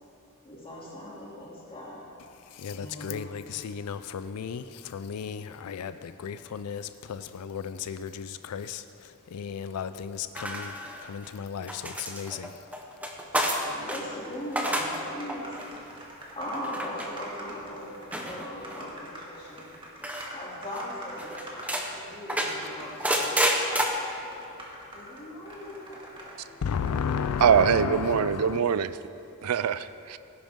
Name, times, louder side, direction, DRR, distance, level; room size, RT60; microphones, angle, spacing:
voice 1, 0.4-2.0 2.7-3.3 13.3-15.6 16.3-19.7 20.3-23.3 24.9-25.9 26.4-26.6, left 1 dB, 25° left, -5 dB, 2.8 m, -39 dB
voice 2, 2.3-12.7 24.2-24.3 24.8-24.9 26.6-28.6, left 7 dB, 85° left, 12 dB, 0.4 m, -34 dB
sound 1, 10.4-11.3 11.7-14.0 14.4-15.0 15.3-15.7 16.6-17.1 18.1-18.8 20.0-20.4 20.8-20.9 21.2-21.9 22.3-23.9, equal, 5° right, 0.9 m, -29 dB
sound 2, 13.8-14.6 14.9-15.0 15.2-22.1 22.6-23.0 23.5-26.4 26.7-27.6, right 1 dB, 25° right, 1.9 m, -45 dB
voice 3, 27.4-28.9 29.4-30.2, right 7 dB, 85° right, 14 dB, 0.4 m, -23 dB
17.0 x 10.5 x 3.7 m, 2.6 s
head